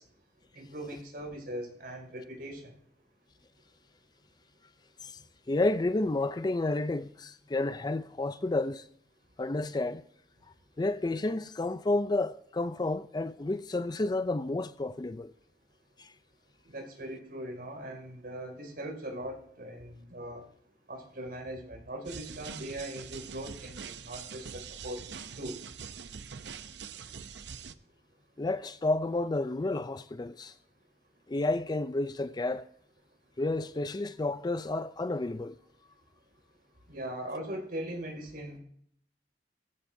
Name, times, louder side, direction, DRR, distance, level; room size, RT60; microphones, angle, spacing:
voice 1, 0.6-2.7 16.7-20.4 20.9-25.0 25.4-25.6 36.9-38.6, right 1 dB, 60° right, 5.4 m, -40 dB
voice 2, 5.5-8.8 9.4-10.0 10.8-15.3 16.0-16.1 28.4-30.5 31.3-32.7 33.4-35.6, left 2 dB, 25° left, 0.4 m, -31 dB
sound 1, 22.0-27.7, right 6 dB, 80° right, 0.7 m, -44 dB
20.0 x 15.0 x 2.7 m
head